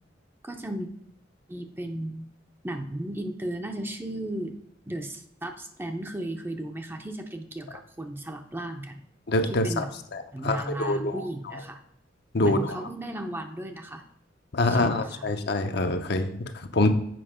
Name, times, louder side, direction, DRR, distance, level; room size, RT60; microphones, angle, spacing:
voice 1, 0.4-0.9 1.5-2.3 2.6-4.5 4.9-9.0 9.5-9.9 10.3-11.8 12.4-14.0 14.7-15.3, right 1 dB, 10° right, 5 dB, 0.6 m, -35 dB
voice 2, 9.3-9.8 10.1-11.3 11.5-11.6 12.3-12.8 14.5-16.9, left 2 dB, 60° left, 7 dB, 0.7 m, -25 dB
7.7 x 5.2 x 5.0 m, 0.71 s
head